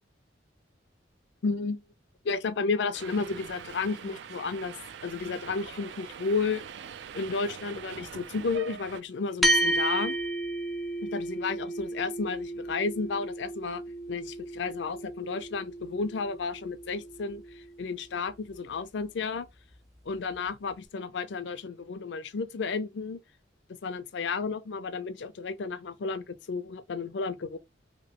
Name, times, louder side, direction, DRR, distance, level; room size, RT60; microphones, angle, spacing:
voice 1, 1.4-1.8 2.2-4.7 5.0-6.6 7.1-10.2 11.0-13.8 14.1-19.5 20.1-23.2 23.8-27.6, left 4 dB, 65° left, 0.4 m, -32 dB
Subway metro underground, 2.9-9.0, right 7 dB, 65° right, 0.3 m, -43 dB
sound 1, 9.4-18.1, right 1 dB, ahead, 0.4 m, -32 dB
3.0 x 2.7 x 2.8 m
head